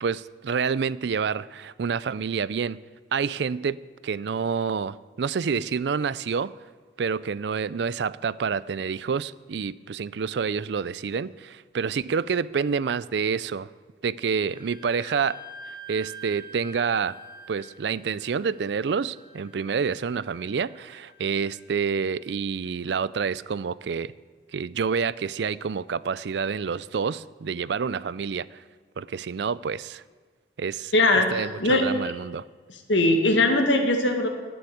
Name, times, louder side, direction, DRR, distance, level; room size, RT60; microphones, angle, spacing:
voice 1, 0.0-2.8 3.1-6.5 7.0-13.7 14.0-15.4 15.9-17.2 17.5-24.1 24.5-28.6 29.0-30.0 30.6-32.4, right 6 dB, 65° right, 19 dB, 0.4 m, -28 dB
Wind instrument woodwind instrument, 14.6-22.0, right 2 dB, 25° right, 1.7 m, -46 dB
voice 2, 30.9-31.3 31.6-31.9 32.9-34.3, left 2 dB, 80° left, 4 dB, 1.9 m, -20 dB
11.5 x 9.4 x 8.7 m, 1.5 s
head